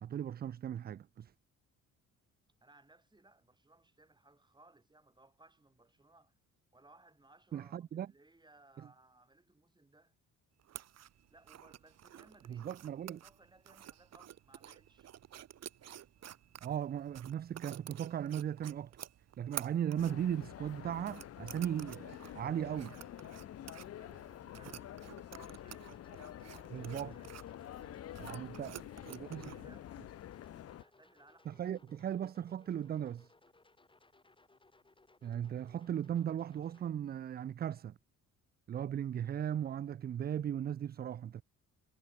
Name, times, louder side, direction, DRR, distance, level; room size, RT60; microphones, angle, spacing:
voice 1, 0.0-1.3 7.5-8.1 8.8-8.9 12.5-13.2 16.6-18.9 19.4-22.9 26.7-27.1 28.2-28.8 29.1-29.6 31.5-33.3 35.2-38.0 38.7-41.4, right 9 dB, 35° right, 0.4 m, -37 dB
voice 2, 2.6-6.3 6.7-10.2 11.3-15.1 22.4-23.0 23.6-26.0 26.5-27.4 27.7-30.0 30.3-31.8, right 2 dB, 15° right, 4.0 m, -65 dB
sound 1, 10.6-29.6, right 11 dB, 60° right, 1.2 m, -51 dB
sound 2, 20.0-30.8, left 12 dB, 55° left, 0.6 m, -48 dB
sound 3, 25.4-36.9, left 2 dB, 15° left, 3.0 m, -66 dB
cardioid pair, 90°, 30 cm